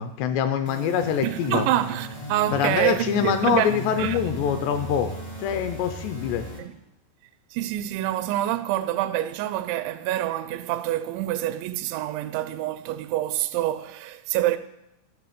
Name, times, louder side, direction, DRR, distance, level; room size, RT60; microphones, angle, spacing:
voice 1, 0.0-1.7 2.5-5.1 5.4-6.5, left 8 dB, 85° left, 2.6 m, -24 dB
sound 1, 0.6-6.6, right 1 dB, 50° left, 0.4 m, -36 dB
voice 2, 1.2-4.2 6.6-6.7 7.5-14.6, right 14 dB, 85° right, 2.8 m, -27 dB
14.5 x 6.7 x 6.6 m
omnidirectional pair, 5.3 m